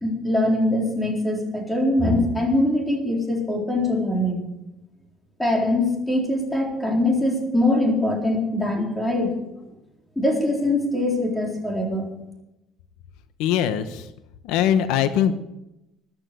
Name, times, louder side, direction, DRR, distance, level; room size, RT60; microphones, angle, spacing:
voice 1, 0.0-4.4 5.4-9.3 10.2-12.1, left 1 dB, 5° left, 0 dB, 4.0 m, -22 dB
voice 2, 13.4-14.1 14.4-15.4, left 9 dB, 90° left, 11 dB, 1.0 m, -21 dB
14.0 x 11.5 x 6.8 m, 0.91 s
cardioid pair, 140°, 0 cm